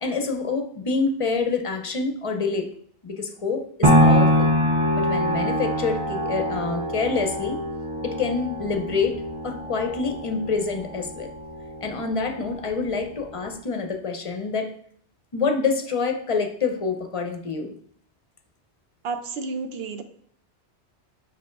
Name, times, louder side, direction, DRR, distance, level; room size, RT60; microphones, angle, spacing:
voice 1, 0.0-2.7 3.0-4.5 4.9-7.6 8.0-11.3 11.8-14.7 15.3-17.7, left 4 dB, 35° left, 5 dB, 0.7 m, -27 dB
sound 1, 3.8-11.9 12.4-12.5, equal, 30° right, 0.9 m, -23 dB
voice 2, 19.0-20.0, right 4 dB, 65° right, 8 dB, 0.9 m, -31 dB
5.4 x 4.5 x 4.5 m, 0.63 s
omnidirectional pair, 1.1 m